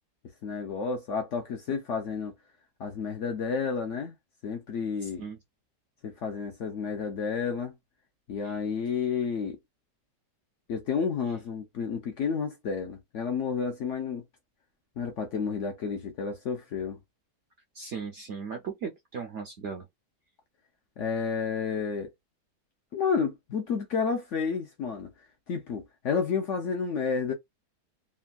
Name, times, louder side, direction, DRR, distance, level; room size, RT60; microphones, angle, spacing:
voice 1, 0.4-2.3 2.8-4.1 4.4-5.2 6.0-7.7 8.3-9.6 10.7-14.2 15.0-17.0 21.0-22.1 22.9-25.1 25.5-27.3, left 6 dB, 65° left, 0.7 m, -31 dB
voice 2, 5.0-5.4 8.4-8.6 17.7-19.9, right 6 dB, 70° right, 0.7 m, -37 dB
3.4 x 2.2 x 2.2 m
omnidirectional pair, 1.7 m